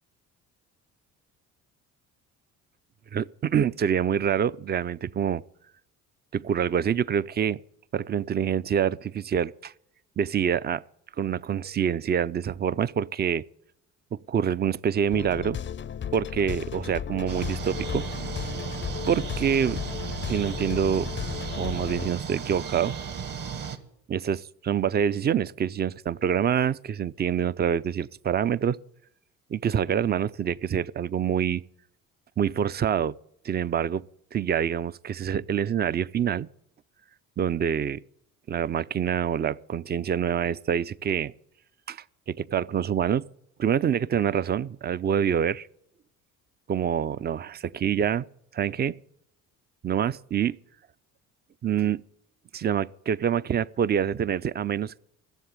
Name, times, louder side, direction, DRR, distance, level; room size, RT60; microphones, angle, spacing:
voice 1, 3.1-5.4 6.3-7.6 7.9-9.7 10.2-10.8 11.2-13.4 14.1-15.6 16.1-18.1 19.1-19.8 20.3-21.1 21.5-22.9 24.1-28.8 29.5-31.6 32.4-33.1 33.4-34.0 34.3-36.5 37.4-38.0 38.5-41.3 41.9-43.2 43.6-45.7 46.7-48.3 48.5-49.0 49.8-50.6 51.6-52.0 52.5-55.0, right 8 dB, 25° right, 0.4 m, -26 dB
sound 1, 15.1-22.1, left 8 dB, 30° left, 0.5 m, -34 dB
sound 2, 17.3-23.8, right 6 dB, 50° right, 1.6 m, -35 dB
15.0 x 7.2 x 8.2 m
hypercardioid pair, 55°, 42 cm